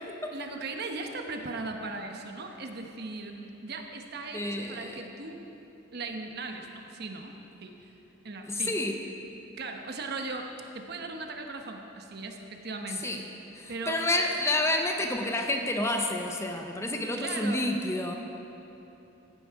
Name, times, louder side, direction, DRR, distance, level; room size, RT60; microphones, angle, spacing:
voice 1, 0.3-5.4 5.9-7.3 7.6-7.9 8.2-8.7 9.6-10.5 10.7-13.1 13.7-14.0 17.2-17.6, right 3 dB, 55° right, 4 dB, 1.0 m, -38 dB
voice 2, 4.3-5.0 8.5-9.0 13.0-13.2 13.6-18.2, left 1 dB, 15° left, 3 dB, 0.7 m, -29 dB
15.0 x 10.0 x 4.8 m, 2.9 s
head